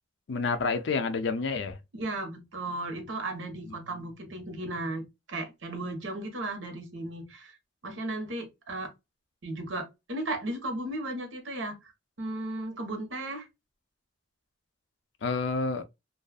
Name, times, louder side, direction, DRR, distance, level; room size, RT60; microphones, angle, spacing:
voice 1, 0.3-1.8 3.7-4.1 15.2-15.9, left 4 dB, 65° left, 0.4 m, -29 dB
voice 2, 1.9-5.0 5.3-7.6 7.8-8.9 9.4-9.8 10.1-11.8 12.2-13.5, right 2 dB, 80° right, 1.0 m, -35 dB
2.5 x 2.3 x 2.3 m
head